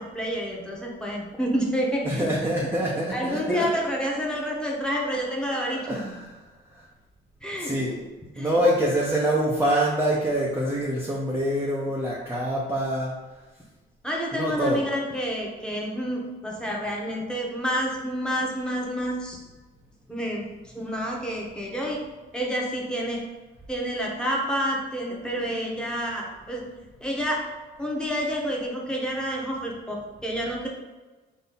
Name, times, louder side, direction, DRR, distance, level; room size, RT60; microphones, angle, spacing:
voice 1, 0.0-2.3 3.1-5.8 7.4-7.7 8.3-8.6 14.0-19.4 20.1-20.5 20.7-22.0 22.3-23.2 23.7-26.6 27.0-27.4 27.8-30.7, equal, 5° left, -3 dB, 1.1 m, -29 dB
voice 2, 2.0-3.7 5.6-6.3 6.7-6.8 7.6-8.0 8.4-13.1 14.3-14.8, right 1 dB, 10° right, -4 dB, 0.6 m, -25 dB
3.9 x 2.7 x 4.1 m, 1.2 s
cardioid pair, 90°, 20 cm